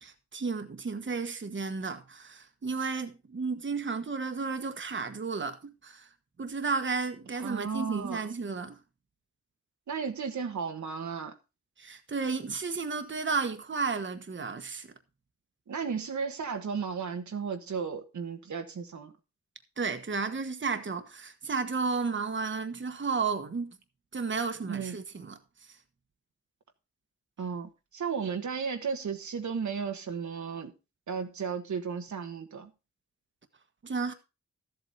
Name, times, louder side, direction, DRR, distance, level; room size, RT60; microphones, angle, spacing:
voice 1, 0.0-6.1 6.4-8.8 11.8-14.9 19.8-23.8 24.1-25.4 33.8-34.1, right 4 dB, 40° right, 1.3 m, -33 dB
voice 2, 7.4-8.2 9.9-11.3 15.7-19.1 24.7-25.0 27.4-30.7 31.1-32.7, right 6 dB, 75° right, 1.4 m, -34 dB
13.0 x 8.0 x 4.1 m
wide cardioid pair, 85°, 29 cm